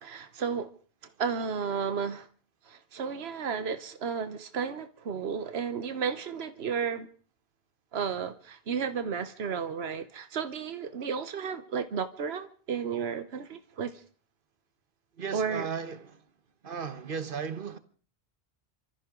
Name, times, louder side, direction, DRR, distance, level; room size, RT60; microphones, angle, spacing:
voice 1, 0.0-0.7 1.2-2.3 2.7-7.1 7.9-14.0 15.3-15.7, right 6 dB, 80° right, 1.2 m, -33 dB
voice 2, 15.2-16.2 16.6-17.8, right 6 dB, 60° right, 1.3 m, -35 dB
28.0 x 14.0 x 3.7 m
omnidirectional pair, 1.0 m